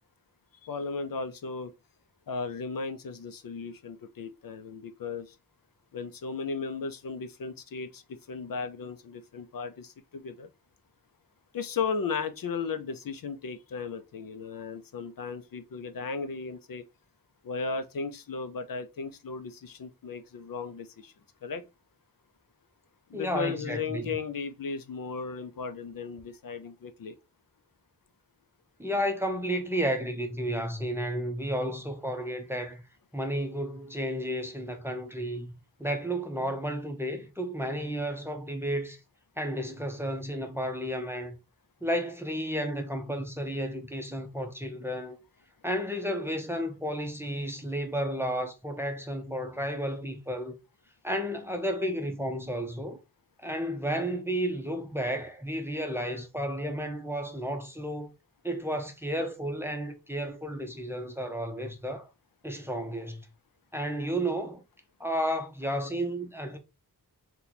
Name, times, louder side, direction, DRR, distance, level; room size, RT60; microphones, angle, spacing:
voice 1, 0.6-1.7 2.3-5.4 5.9-10.5 11.5-16.8 17.4-21.1 21.4-21.6 23.1-27.1, left 5 dB, 60° left, 0.5 m, -36 dB
voice 2, 23.1-24.1 28.8-32.8 33.1-35.5 35.8-39.0 39.4-41.4 41.8-45.2 45.6-50.6 51.0-53.0 53.4-58.1 58.4-62.1 62.4-63.3 63.7-64.6 65.0-66.6, equal, 5° right, 0.6 m, -32 dB
2.9 x 2.2 x 3.9 m
wide cardioid pair, 80°, 38 cm